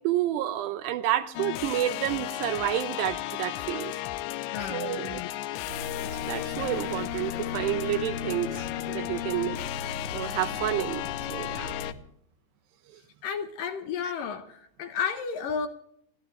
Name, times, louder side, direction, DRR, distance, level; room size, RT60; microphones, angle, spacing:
voice 1, 0.0-3.9 4.6-5.2 6.1-9.6 10.1-11.0 11.3-11.8, right 12 dB, 80° right, 11 dB, 2.8 m, -30 dB
sound 1, 1.4-11.9, left 15 dB, 90° left, 3.1 m, -34 dB
voice 2, 4.5-5.3 13.2-15.7, left 6 dB, 70° left, 8 dB, 2.2 m, -32 dB
sound 2, 5.7-11.9, left 2 dB, 40° right, 3.4 m, -40 dB
29.5 x 12.0 x 3.3 m, 0.70 s
omnidirectional pair, 5.1 m